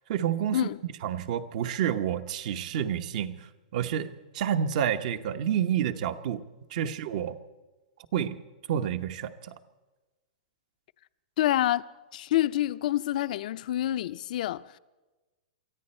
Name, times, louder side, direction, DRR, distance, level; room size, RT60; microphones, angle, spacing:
voice 1, 0.1-0.7 1.0-6.4 6.7-7.4 8.1-8.4 8.7-9.5, right 9 dB, 50° right, 1.0 m, -29 dB
voice 2, 11.4-11.8 12.1-14.7, left 13 dB, 60° left, 0.5 m, -27 dB
23.5 x 14.0 x 4.4 m
hypercardioid pair, 150°, 5 cm